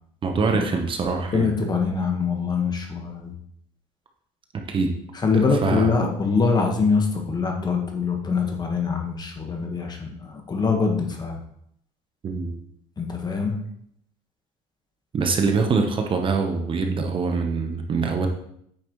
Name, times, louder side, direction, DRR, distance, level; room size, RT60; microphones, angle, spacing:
voice 1, 0.2-1.5 4.7-4.9 5.3-5.9 12.2-12.5 15.1-18.3, right 4 dB, 35° right, 4 dB, 1.0 m, -24 dB
voice 2, 1.0-3.3 5.2-11.4 13.0-13.5, left 4 dB, 25° left, 2 dB, 1.5 m, -24 dB
8.7 x 5.9 x 3.1 m, 0.71 s
supercardioid pair, 100°, 15 cm